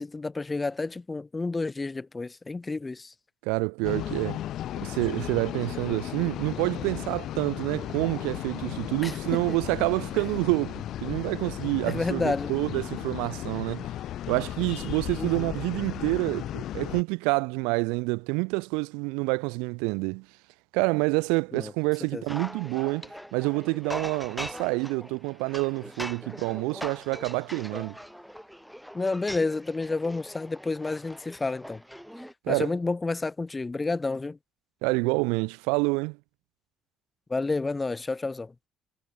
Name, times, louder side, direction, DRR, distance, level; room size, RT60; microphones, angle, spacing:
voice 1, 0.0-3.1 9.0-9.6 11.9-12.5 15.2-15.5 21.5-21.7 22.1-22.2 28.9-31.8 32.5-34.4 37.3-38.5, left 3 dB, 25° left, 0.4 m, -30 dB
voice 2, 3.4-4.4 4.8-13.9 14.3-20.3 20.7-28.0 32.4-32.7 34.8-36.2, right 31 dB, 75° right, 0.5 m, -28 dB
sound 1, 3.8-17.0, left 12 dB, 60° left, 0.9 m, -35 dB
sound 2, 22.3-32.3, equal, ahead, 0.8 m, -41 dB
hypercardioid pair, 50°, 0 cm